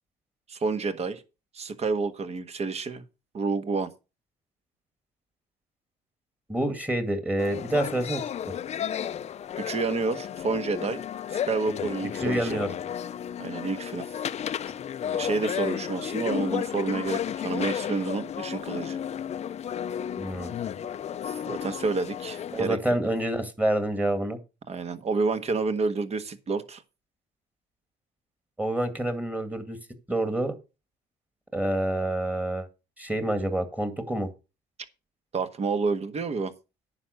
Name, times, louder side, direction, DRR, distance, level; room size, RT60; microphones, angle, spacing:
voice 1, 0.5-1.2 1.5-3.0 3.3-3.9 9.6-11.0 11.3-12.6 13.4-14.0 15.1-19.0 21.3-22.8 24.7-26.8 35.3-36.5, right 4 dB, 40° right, 1.4 m, -29 dB
voice 2, 6.5-8.2 12.2-12.7 20.2-20.5 22.5-24.4 28.6-29.8 30.1-30.6 31.5-32.7 33.0-34.3, right 1 dB, 10° right, 2.1 m, -27 dB
sound 1, 7.4-22.6, left 9 dB, 40° left, 0.5 m, -33 dB
9.7 x 6.0 x 6.4 m
cardioid pair, 110°, 17 cm